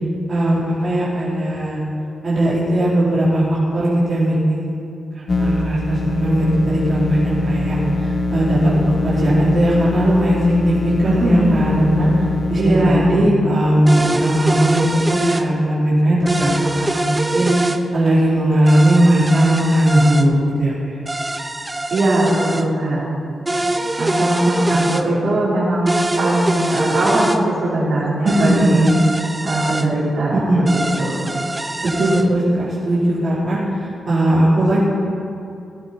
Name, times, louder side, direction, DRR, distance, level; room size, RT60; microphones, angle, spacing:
voice 1, 0.3-1.8 2.2-4.7 5.1-8.7 9.0-12.1 12.5-16.6 16.9-20.3 20.6-20.7 24.7-24.8 28.2-28.9 30.3-30.6 31.8-33.6 34.1-34.8, right 1 dB, 40° right, -10 dB, 4.3 m, -18 dB
sound 1, 5.3-13.3, left 2 dB, 30° left, 1.3 m, -22 dB
voice 2, 11.0-11.6 12.6-13.1 21.9-23.1 24.0-28.8 29.4-31.3, right 1 dB, 60° right, -7 dB, 4.8 m, -20 dB
sound 2, 13.9-15.5 16.3-17.8 18.7-20.3 21.1-22.6 23.5-25.0 25.9-27.4 28.3-29.9 30.7-32.2, right 1 dB, 10° right, 0.6 m, -23 dB
17.0 x 17.0 x 4.5 m, 2.6 s
wide cardioid pair, 170°, 0 cm